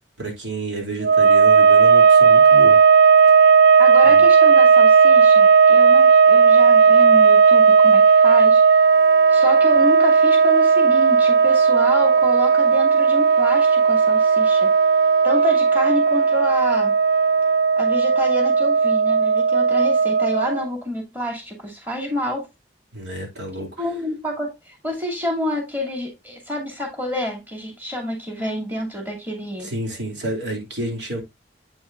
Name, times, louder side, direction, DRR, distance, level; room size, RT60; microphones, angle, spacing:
voice 1, 0.2-2.8 4.0-4.3 22.9-23.9 29.6-31.2, right 1 dB, 85° right, 2.7 m, -30 dB
sound 1, 1.0-20.7, right 5 dB, 65° right, 0.4 m, -14 dB
voice 2, 3.8-8.6 9.3-14.7 15.2-16.9 17.8-22.5 23.8-29.7, left 1 dB, 10° right, 2.6 m, -28 dB
8.5 x 6.1 x 2.4 m
head